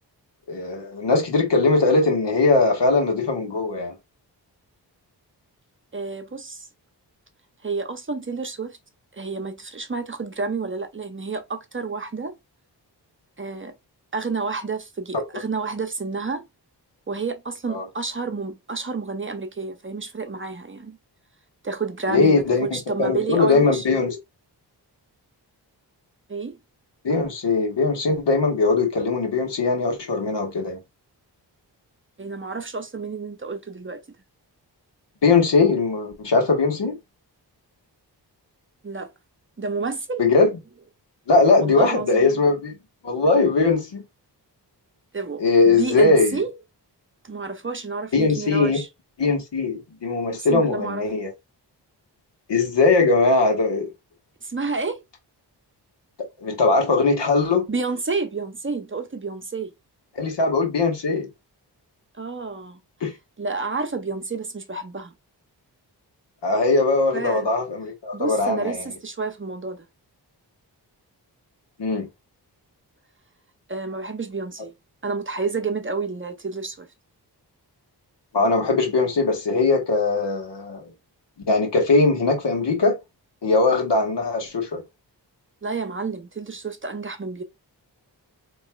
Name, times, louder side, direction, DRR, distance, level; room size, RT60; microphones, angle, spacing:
voice 1, 0.5-3.9 17.7-17.8 22.1-24.2 27.0-30.8 35.2-37.0 40.2-40.5 41.3-42.8 43.0-44.0 45.4-46.4 48.1-48.8 49.2-51.3 52.5-53.9 56.4-57.6 60.1-61.3 63.0-63.1 66.4-68.9 71.8-72.1 78.3-80.8 81.5-82.9 83.4-84.8, left 3 dB, 75° left, 1.5 m, -20 dB
voice 2, 5.9-6.7 7.6-8.8 9.1-12.3 13.4-13.7 14.1-16.5 17.1-21.0 21.6-23.9 26.3-26.6 32.2-34.0 38.8-39.1 39.6-40.2 41.6-42.4 45.1-46.5 47.2-48.9 50.3-51.0 54.4-55.0 57.7-59.7 62.2-62.8 63.4-65.1 67.1-67.5 68.1-69.9 73.7-74.7 75.0-76.9 85.6-87.4, right 4 dB, 30° right, 0.7 m, -30 dB
4.2 x 3.0 x 2.3 m
wide cardioid pair, 75°, 42 cm